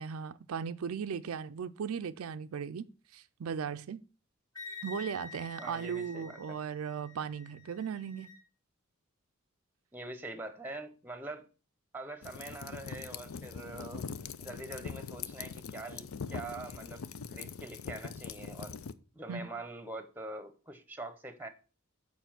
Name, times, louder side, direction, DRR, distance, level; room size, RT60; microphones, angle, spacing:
voice 1, 0.0-4.0 4.8-8.3 19.3-19.5, right 7 dB, 75° right, 0.4 m, -37 dB
Wind instrument woodwind instrument, 4.5-8.4, left 4 dB, 15° left, 1.2 m, -48 dB
voice 2, 5.6-6.6 9.9-11.5 11.9-14.1 14.4-18.8 19.1-21.5, right 2 dB, 10° right, 0.8 m, -44 dB
sound 1, 12.2-18.9, left 6 dB, 70° left, 0.5 m, -42 dB
6.8 x 4.9 x 5.9 m
head